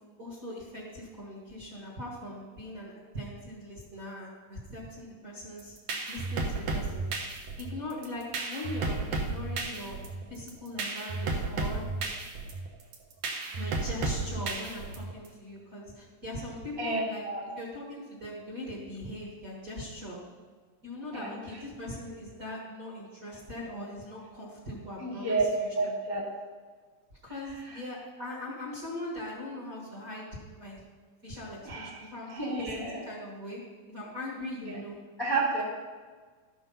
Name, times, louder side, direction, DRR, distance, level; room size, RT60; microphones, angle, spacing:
voice 1, 0.2-5.8 6.1-7.0 7.6-10.0 10.3-11.8 13.5-17.2 17.6-20.2 20.8-26.0 27.2-30.8 31.2-33.6 33.9-35.0, left 1 dB, 35° right, -6 dB, 1.5 m, -40 dB
sound 1, 5.6-15.3, right 3 dB, 65° right, 1.5 m, -33 dB
voice 2, 16.8-17.4 21.1-21.6 25.0-25.4 25.7-26.2 27.7-27.8 31.6-32.0 32.3-33.0 34.6-34.8 35.2-35.6, right 3 dB, 15° left, -6 dB, 0.9 m, -31 dB
12.5 x 6.2 x 5.5 m, 1.5 s
omnidirectional pair, 4.0 m